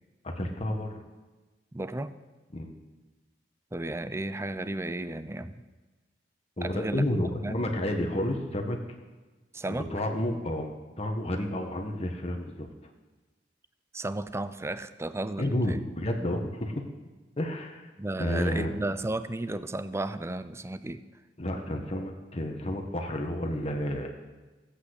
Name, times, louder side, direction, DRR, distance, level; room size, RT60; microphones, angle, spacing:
voice 1, 0.2-1.0 2.5-2.8 6.6-8.8 9.7-12.7 15.4-16.8 17.4-17.9 18.2-18.7 21.4-24.1, left 1 dB, 35° left, 3 dB, 1.5 m, -31 dB
voice 2, 1.7-2.1 3.7-5.6 6.6-7.6 9.5-9.9 13.9-15.8 18.0-21.0, right 2 dB, 15° right, 13 dB, 0.5 m, -34 dB
16.0 x 8.4 x 8.0 m, 1.2 s
head